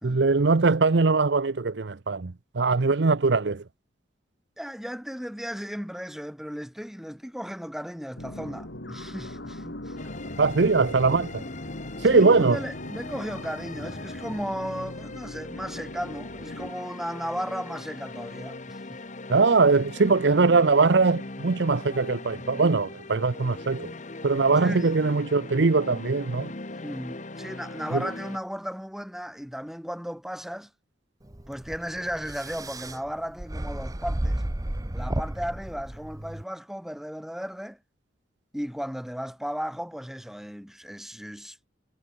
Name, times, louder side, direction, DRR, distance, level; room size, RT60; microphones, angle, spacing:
voice 1, 0.0-3.6 10.4-11.4 12.0-12.6 19.3-23.9 24.2-26.5 27.9-28.0, right 4 dB, 65° right, 0.7 m, -21 dB
voice 2, 4.6-10.0 12.0-19.0 24.6-24.9 26.7-30.7 31.5-34.4 34.9-37.8 38.5-41.6, equal, ahead, 1.7 m, -35 dB
sound 1, 8.2-16.7, left 1 dB, 65° left, 3.5 m, -40 dB
sound 2, 10.0-28.4, left 2 dB, 40° left, 1.4 m, -40 dB
sound 3, 31.3-36.4, right 1 dB, 20° right, 0.9 m, -33 dB
head